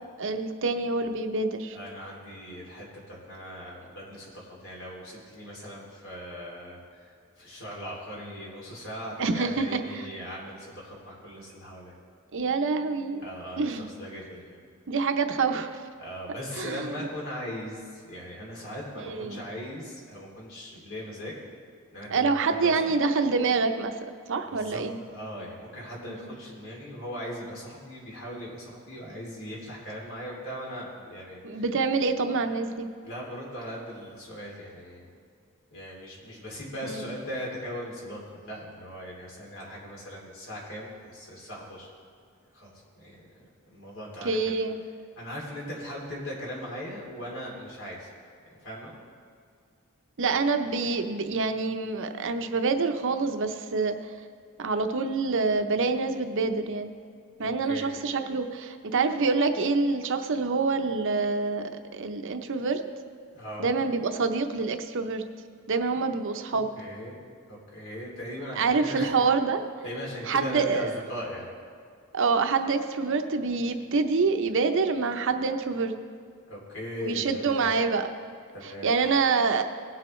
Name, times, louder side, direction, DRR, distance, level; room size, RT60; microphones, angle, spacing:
voice 1, 0.2-1.8 9.2-9.8 12.3-13.3 13.6-13.9 14.9-15.7 16.6-16.9 19.0-19.4 22.1-23.9 24.3-25.0 26.2-26.3 31.4-32.9 36.8-37.0 44.2-44.8 50.2-54.0 54.6-56.9 57.4-62.8 63.6-65.2 65.7-66.7 68.6-69.6 70.3-70.9 72.1-75.9 77.0-78.1 78.8-79.6, right 4 dB, 60° right, 7 dB, 0.7 m, -26 dB
voice 2, 1.7-11.9 13.2-14.6 16.0-21.4 21.9-23.0 24.4-24.8 25.1-31.6 33.0-35.2 35.7-41.9 42.5-44.5 45.2-48.1 48.6-48.9 57.4-57.9 63.3-63.7 66.8-67.2 67.5-69.2 69.8-71.5 76.5-77.8 78.5-79.0, equal, 65° left, -3 dB, 3.0 m, -39 dB
18.0 x 7.6 x 3.2 m, 2.3 s
head